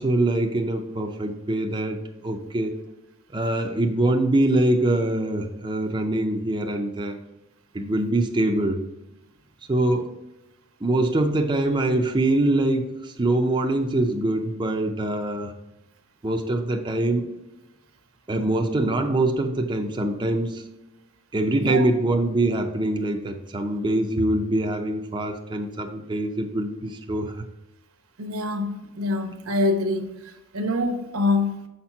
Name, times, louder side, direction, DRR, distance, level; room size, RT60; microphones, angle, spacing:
voice 1, 0.0-2.7 3.3-7.2 7.7-8.8 9.7-10.1 10.8-15.5 16.2-17.3 18.3-20.6 21.3-27.4, right 1 dB, 20° right, 3 dB, 0.5 m, -24 dB
voice 2, 28.2-30.1 30.5-31.6, left 2 dB, 75° right, 7 dB, 0.9 m, -25 dB
6.6 x 4.4 x 5.7 m, 0.97 s
head